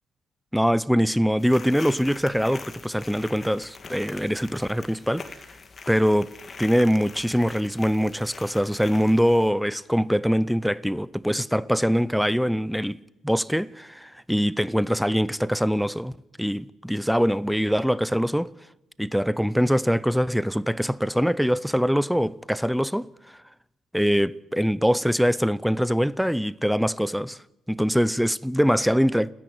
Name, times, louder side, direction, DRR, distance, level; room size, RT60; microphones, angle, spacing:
voice 1, 0.5-5.3 5.9-6.3 6.6-13.0 13.2-16.1 16.4-18.5 19.0-23.1 23.9-27.4 27.7-29.3, equal, ahead, 0.7 m, -23 dB
sound 1, 1.4-9.5, left 4 dB, 40° left, 2.0 m, -43 dB
29.5 x 10.5 x 9.2 m
cardioid pair, 90°, 0 cm